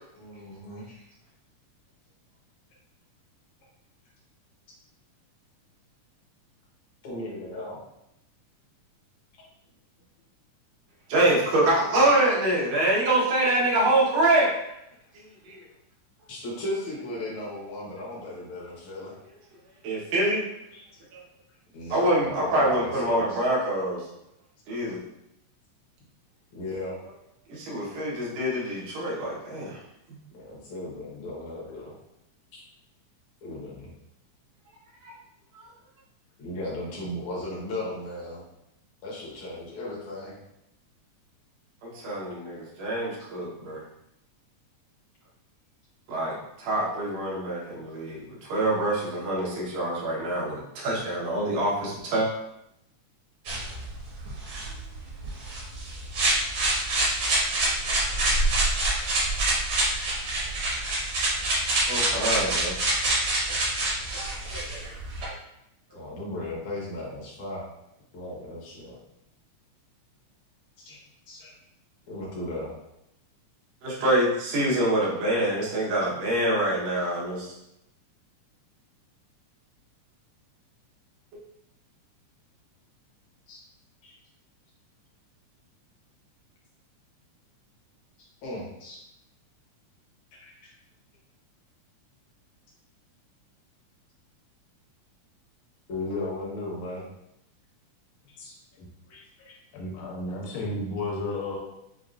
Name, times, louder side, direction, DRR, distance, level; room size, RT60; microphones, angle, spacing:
voice 1, 0.2-1.0 7.0-7.8 9.3-9.4 16.3-19.1 20.7-20.8 21.5-23.4 26.5-27.0 30.3-32.0 32.5-32.6 33.4-33.9 36.4-38.5 39.0-40.4 64.6-64.8 65.9-67.6 68.1-68.9 70.8-71.0 71.3-71.5 72.1-72.8 83.5-83.6 84.0-84.1 88.4-89.0 90.4-90.7 95.9-97.1 98.4-98.5 99.1-99.6, left 1 dB, 65° left, -5 dB, 1.2 m, -36 dB
voice 2, 11.1-14.6 15.4-15.6 19.8-20.5 21.9-24.0 24.7-25.0 27.5-29.8 30.1-30.2 35.0-35.1 41.8-43.8 46.1-52.3 61.9-62.8 64.1-64.9 65.2-65.3 73.8-77.5, right 1 dB, 80° right, -5 dB, 2.6 m, -25 dB
sound 1, 53.5-65.3, right 2 dB, 60° right, 1.5 m, -26 dB
voice 3, 99.7-101.6, left 2 dB, 85° left, -3 dB, 2.4 m, -32 dB
6.2 x 2.3 x 2.5 m, 0.84 s
omnidirectional pair, 3.6 m